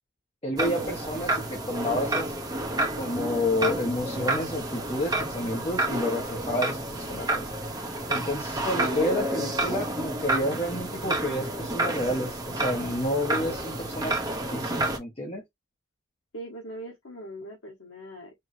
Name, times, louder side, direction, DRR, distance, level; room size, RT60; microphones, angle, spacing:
voice 1, 0.4-2.3 3.0-7.5 8.1-14.2 14.5-15.4, left 1 dB, 30° left, 1.2 m, -30 dB
sound 1, 0.6-15.0, right 2 dB, 20° right, 0.8 m, -30 dB
voice 2, 16.3-18.3, right 1 dB, 75° left, 1.3 m, -41 dB
4.5 x 2.8 x 3.2 m
head